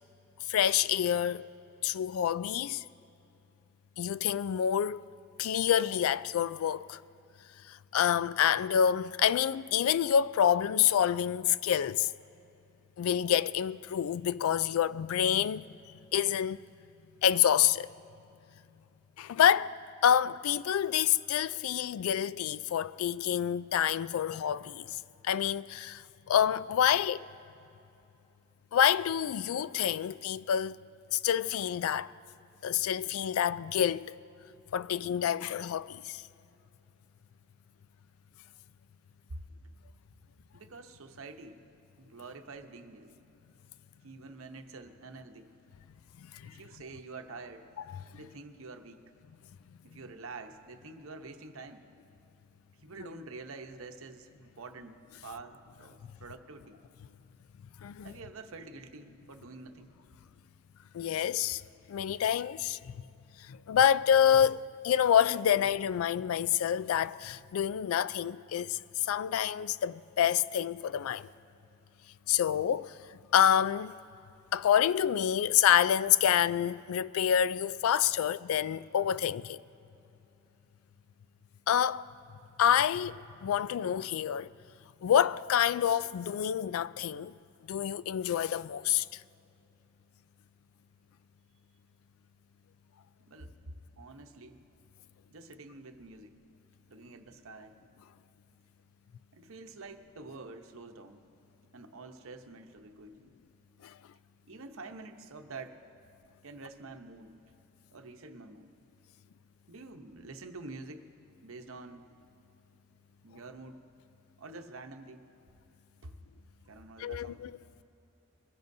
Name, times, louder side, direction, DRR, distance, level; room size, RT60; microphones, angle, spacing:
voice 1, 0.5-1.5 1.8-2.8 4.0-5.0 5.4-7.0 7.7-12.1 13.0-16.6 17.2-17.9 19.2-19.8 20.0-27.3 28.7-30.8 31.1-32.1 32.6-34.2 34.7-36.2 46.3-46.5 57.8-58.1 60.9-61.6 61.9-62.9 63.5-71.3 72.3-73.0 73.3-74.0 74.5-79.6 81.7-82.1 82.6-84.5 85.0-87.3 87.7-89.2 103.8-103.9 117.0-117.5, left 9 dB, 80° left, 0.3 m, -27 dB
voice 2, 40.5-41.7 42.0-43.2 44.0-45.5 46.4-47.7 48.1-49.0 49.8-51.9 52.8-56.8 58.0-59.9 93.3-94.6 95.3-96.4 96.9-97.8 99.3-101.2 101.7-103.3 104.5-105.8 106.4-107.4 107.9-108.7 109.7-111.1 111.4-112.1 113.2-113.9 114.4-115.2 116.0-116.2 116.7-117.4, right 3 dB, 75° right, 0.9 m, -47 dB
22.0 x 15.5 x 2.7 m
head